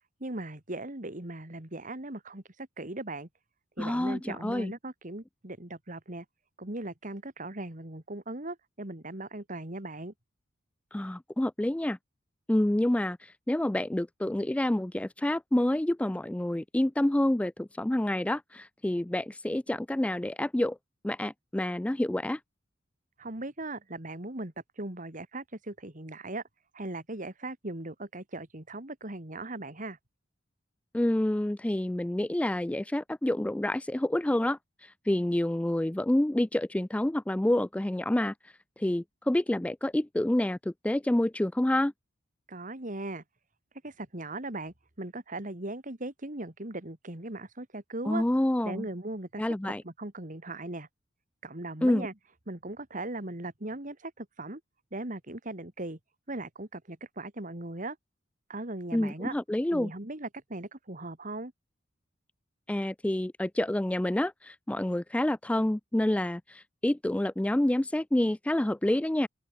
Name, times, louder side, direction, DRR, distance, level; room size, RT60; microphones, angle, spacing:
voice 1, 0.2-3.3 3.8-6.2 6.6-10.1 23.2-26.4 26.7-30.0 42.5-43.2 43.8-48.2 48.6-50.9 51.4-52.1 52.5-54.6 54.9-56.0 56.3-58.0 58.5-59.3 59.7-61.5, right 2 dB, 40° right, 2.8 m, -38 dB
voice 2, 3.8-4.7 10.9-12.0 12.5-20.8 21.0-22.4 30.9-38.3 38.8-41.9 48.1-48.8 49.4-49.8 51.8-52.1 58.9-59.9 62.7-69.3, left 1 dB, 5° left, 0.3 m, -28 dB
open air
head